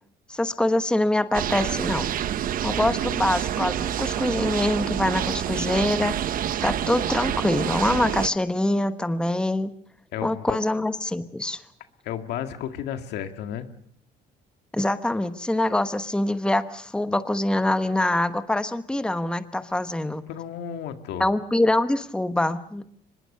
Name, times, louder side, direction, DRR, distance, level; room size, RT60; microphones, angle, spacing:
voice 1, 0.3-2.1 2.6-6.2 6.6-9.7 10.2-11.6 14.7-20.2 21.2-22.8, left 1 dB, 5° left, 10 dB, 1.1 m, -24 dB
sound 1, 1.3-8.3, right 10 dB, 55° right, 0.9 m, -27 dB
voice 2, 10.1-10.6 12.0-13.7 20.3-21.3, left 10 dB, 80° left, 7 dB, 2.0 m, -33 dB
24.5 x 21.5 x 6.7 m, 0.65 s
cardioid pair, 110°, 17 cm